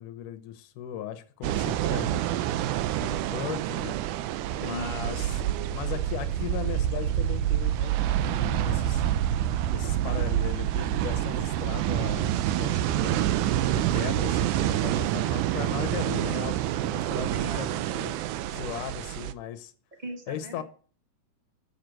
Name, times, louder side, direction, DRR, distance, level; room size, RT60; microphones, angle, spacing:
voice 1, 0.0-2.2 3.0-4.0 4.6-5.4 5.7-9.0 9.7-12.3 12.6-16.6 16.8-18.2 18.5-19.7 20.3-20.6, left 10 dB, 75° left, 2.4 m, -38 dB
sound 1, 1.4-19.3, right 12 dB, 80° right, 2.0 m, -27 dB
voice 2, 4.6-6.0 17.3-17.6 20.0-20.6, right 2 dB, 15° right, 1.6 m, -39 dB
6.9 x 6.6 x 7.6 m
omnidirectional pair, 3.8 m